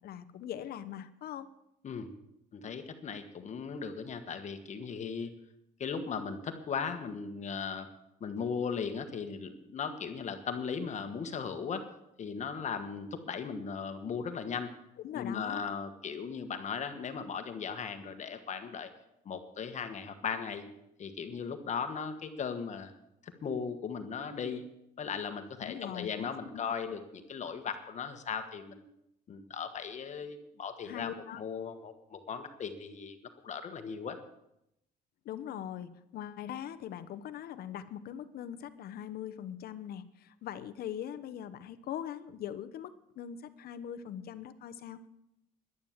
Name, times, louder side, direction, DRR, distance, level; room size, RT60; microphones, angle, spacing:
voice 1, 0.0-1.5 15.0-15.7 25.6-26.6 30.8-31.4 35.2-45.1, left 10 dB, 65° left, 13 dB, 0.9 m, -41 dB
voice 2, 2.5-5.3 5.8-7.9 8.2-11.8 12.2-14.7 15.1-18.9 19.2-20.6 21.0-22.9 23.2-24.6 25.0-28.9 29.3-33.2 33.4-34.2, left 6 dB, 45° left, 7 dB, 1.4 m, -37 dB
11.0 x 10.5 x 7.3 m, 0.82 s
cardioid pair, 110°, 17 cm